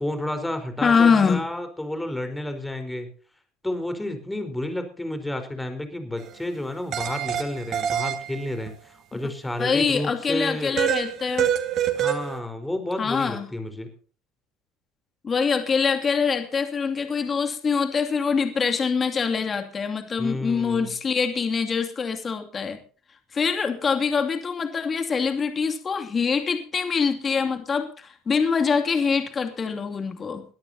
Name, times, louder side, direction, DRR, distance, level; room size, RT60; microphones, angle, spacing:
voice 1, 0.0-3.1 3.6-10.8 12.0-13.9 20.2-20.9, left 1 dB, 10° left, 7 dB, 4.4 m, -31 dB
voice 2, 0.8-1.4 9.6-11.5 13.0-13.5 15.2-22.8 23.3-30.4, left 5 dB, 35° left, 6 dB, 2.6 m, -24 dB
sound 1, 6.2-6.3 6.9-8.7 10.8-12.4, right 10 dB, 50° right, 2.3 m, -26 dB
22.5 x 13.5 x 2.8 m, 0.40 s
hypercardioid pair, 80°, 0 cm